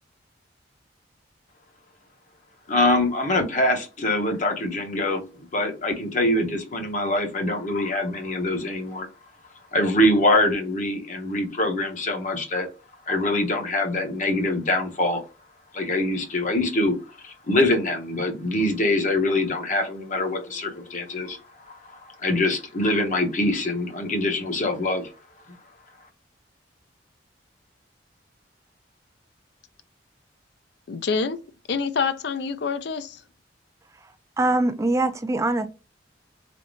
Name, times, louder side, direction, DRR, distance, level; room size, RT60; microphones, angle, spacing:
voice 1, 2.7-9.1 9.7-12.7 13.1-15.2 15.7-17.0 17.2-25.1 25.5-25.6, left 1 dB, 40° left, 0.8 m, -24 dB
voice 2, 30.9-31.4 31.7-33.2, left 5 dB, 60° left, 0.4 m, -26 dB
voice 3, 34.4-35.7, right 2 dB, 15° right, 0.3 m, -23 dB
3.8 x 3.4 x 2.5 m
head